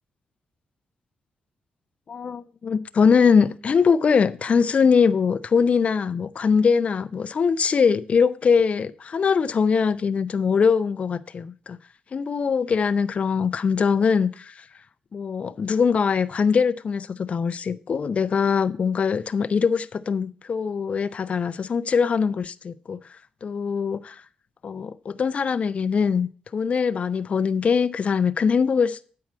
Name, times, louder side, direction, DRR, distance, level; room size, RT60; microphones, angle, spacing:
voice 1, 2.1-11.8 12.1-14.7 15.1-24.2 24.6-29.0, left 6 dB, 50° left, 0.5 m, -22 dB
8.7 x 4.7 x 7.4 m
cardioid pair, 85°, 3 cm